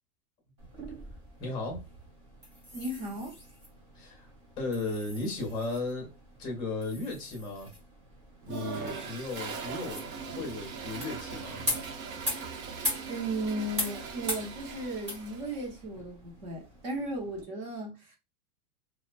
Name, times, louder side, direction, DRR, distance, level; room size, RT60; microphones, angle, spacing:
sound 1, 0.6-17.4, left 1 dB, 25° right, 0.3 m, -41 dB
voice 1, 1.4-1.8 3.9-4.3 4.6-6.1 6.4-7.7 8.5-11.7, left 3 dB, 10° left, 0.7 m, -35 dB
voice 2, 2.7-3.4 13.1-18.2, right 1 dB, 40° right, 1.0 m, -35 dB
Toilet flush, 8.4-15.7, right 5 dB, 60° right, 0.7 m, -40 dB
2.4 x 2.1 x 2.5 m
supercardioid pair, 160°, 46 cm